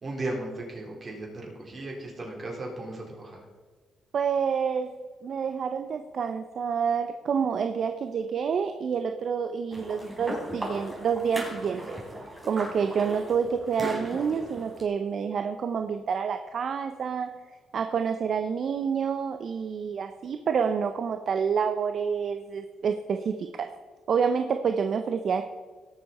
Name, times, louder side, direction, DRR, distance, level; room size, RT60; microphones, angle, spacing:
voice 1, 0.0-3.4, right 2 dB, 40° right, -1 dB, 4.2 m, -36 dB
voice 2, 4.1-4.9 5.2-12.0 12.5-17.3 17.7-23.7 24.1-25.4, right 6 dB, 60° right, 7 dB, 0.6 m, -28 dB
sound 1, 9.7-14.8, equal, 20° right, 4.0 m, -37 dB
18.0 x 7.2 x 4.2 m, 1.5 s
supercardioid pair, 65°, 0 cm